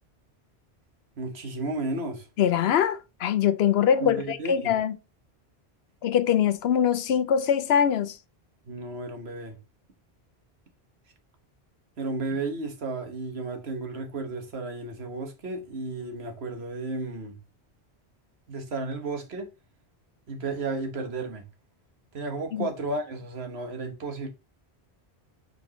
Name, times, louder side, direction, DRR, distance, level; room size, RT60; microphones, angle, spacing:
voice 1, 1.2-2.3 4.0-4.7 8.6-9.6 12.0-17.4 18.5-19.5 20.3-21.5 22.1-24.3, right 3 dB, 75° right, 1.5 m, -33 dB
voice 2, 2.4-4.9 6.0-8.2 22.5-22.7, left 9 dB, 70° left, 0.8 m, -23 dB
5.3 x 4.5 x 4.0 m
omnidirectional pair, 1.1 m